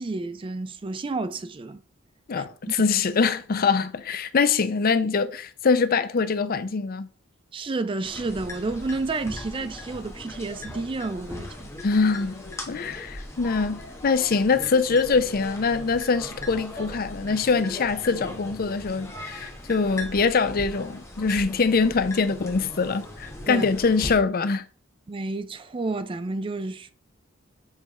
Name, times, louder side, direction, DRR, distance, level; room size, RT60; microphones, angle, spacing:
voice 1, 0.0-1.8 2.3-2.8 7.5-11.7 23.5-23.7 25.1-26.9, right 3 dB, 25° right, 0.4 m, -30 dB
voice 2, 2.3-7.1 11.8-24.7, left 4 dB, 45° left, 0.5 m, -23 dB
sound 1, 8.0-24.2, left 1 dB, 15° left, 1.1 m, -39 dB
7.4 x 3.5 x 4.2 m
head